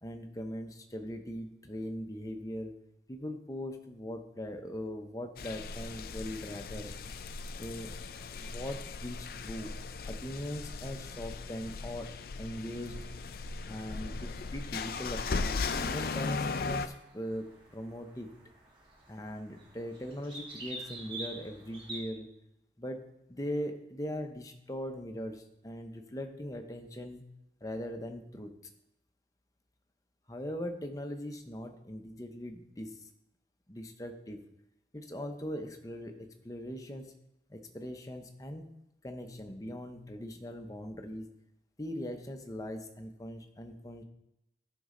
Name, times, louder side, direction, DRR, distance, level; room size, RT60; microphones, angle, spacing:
voice 1, 0.0-2.7 3.1-6.9 7.6-7.9 8.4-9.7 10.1-12.1 12.4-13.1 13.7-18.3 19.1-22.3 22.8-23.0 23.3-27.2 27.6-28.5 30.3-33.1 33.7-34.4 34.9-37.1 37.5-38.7 39.0-41.3 41.8-44.0, equal, 20° left, 5 dB, 0.7 m, -40 dB
sound 1, 5.4-16.9, left 4 dB, 55° left, 0.4 m, -37 dB
sound 2, 16.8-22.0, right 2 dB, 25° right, 1.7 m, -47 dB
11.5 x 5.3 x 3.8 m, 0.88 s
head